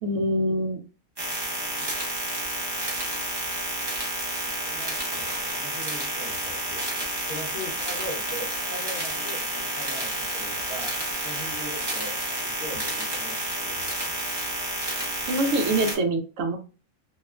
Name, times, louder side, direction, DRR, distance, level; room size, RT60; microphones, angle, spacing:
voice 1, 0.0-0.8 15.3-16.6, right 1 dB, 70° right, 5 dB, 0.9 m, -24 dB
sound 1, 1.2-15.9, right 1 dB, 25° right, 0.5 m, -30 dB
voice 2, 4.7-10.9 11.2-14.2, equal, 50° left, -2 dB, 1.1 m, -40 dB
2.8 x 2.1 x 2.3 m, 0.35 s
omnidirectional pair, 1.4 m